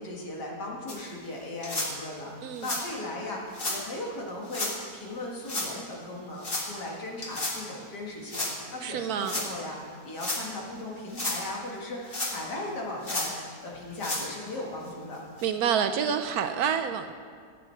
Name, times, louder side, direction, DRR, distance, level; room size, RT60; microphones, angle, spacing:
voice 1, 0.0-15.2, left 2 dB, 75° left, -2 dB, 2.5 m, -37 dB
sound 1, 0.9-1.0 1.6-1.9 2.6-2.8 3.5-3.8 4.5-4.7 5.4-5.7 6.4-6.7 7.2-7.6 8.3-8.5 9.2-9.5 10.1-10.4 11.0-11.4 12.1-12.6 13.0-13.3 13.9-14.3 14.9-15.0 15.4-15.5 16.2-16.3, left 2 dB, 35° left, 1.8 m, -32 dB
voice 2, 8.8-9.4 15.4-17.1, right 8 dB, 70° right, 8 dB, 1.0 m, -28 dB
16.0 x 8.9 x 4.5 m, 2.1 s
omnidirectional pair, 1.8 m